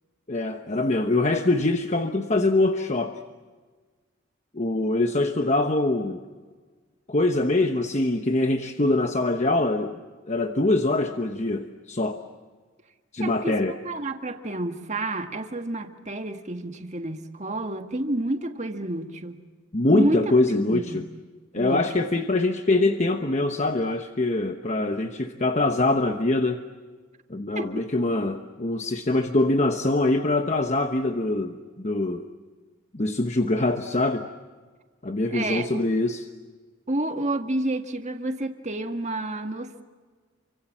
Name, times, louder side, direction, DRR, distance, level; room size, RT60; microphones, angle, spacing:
voice 1, 0.3-3.2 4.5-6.2 7.1-10.0 10.3-12.2 13.1-13.7 19.7-21.1 21.5-26.6 27.3-32.3 32.9-34.3 35.0-36.2, left 2 dB, 35° left, 6 dB, 1.0 m, -24 dB
voice 2, 13.2-19.4 19.9-21.0 21.6-21.8 27.6-27.7 35.3-35.9 36.9-39.8, right 1 dB, 35° right, 6 dB, 1.7 m, -30 dB
29.5 x 25.0 x 7.4 m, 1.4 s
head